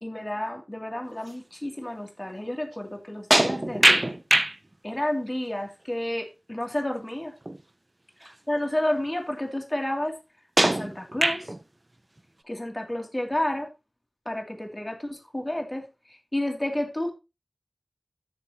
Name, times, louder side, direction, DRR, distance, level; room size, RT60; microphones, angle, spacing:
voice 1, 0.0-4.2 4.8-7.3 8.5-10.1 10.6-11.5 12.5-13.7 14.3-15.8 16.1-17.1, left 1 dB, 25° left, 2 dB, 2.6 m, -30 dB
sound 1, 3.3-4.6 7.5-7.6 8.3-8.4 10.6-11.6, right 1 dB, 35° right, 0.7 m, -21 dB
13.0 x 6.7 x 2.9 m, 0.27 s
wide cardioid pair, 55°, 0 cm